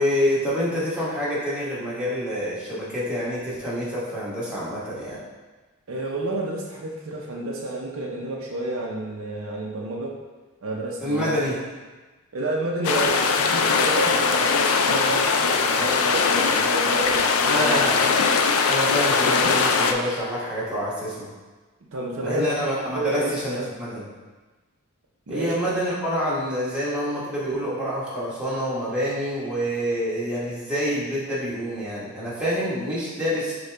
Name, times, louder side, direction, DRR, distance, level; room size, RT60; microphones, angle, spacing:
voice 1, 0.0-5.2 11.0-11.5 17.4-18.0 18.7-21.3 22.2-24.0 25.3-33.6, equal, 5° right, -9 dB, 1.1 m, -27 dB
voice 2, 5.9-10.1 10.6-11.3 12.3-17.8 21.9-22.6 22.9-23.7 25.3-25.5, right 2 dB, 65° right, -1 dB, 0.6 m, -30 dB
sound 1, 12.8-19.9, left 5 dB, 65° left, 0.4 m, -21 dB
6.4 x 2.3 x 3.3 m, 1.3 s
head